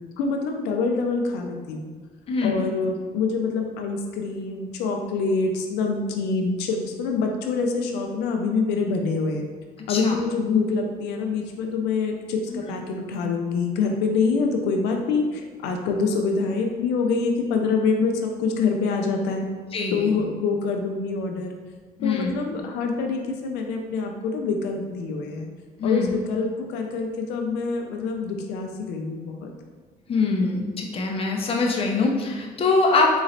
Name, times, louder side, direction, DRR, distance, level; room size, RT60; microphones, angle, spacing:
voice 1, 0.2-1.9 2.4-9.5 9.9-19.5 19.9-21.5 22.0-25.5 25.8-29.5, left 4 dB, 85° left, 3 dB, 0.4 m, -25 dB
voice 2, 19.7-20.2 22.0-22.3 25.8-26.1 30.1-33.1, left 4 dB, 35° left, 0 dB, 0.6 m, -23 dB
4.0 x 3.0 x 2.6 m, 1.4 s
cardioid pair, 110°, 17 cm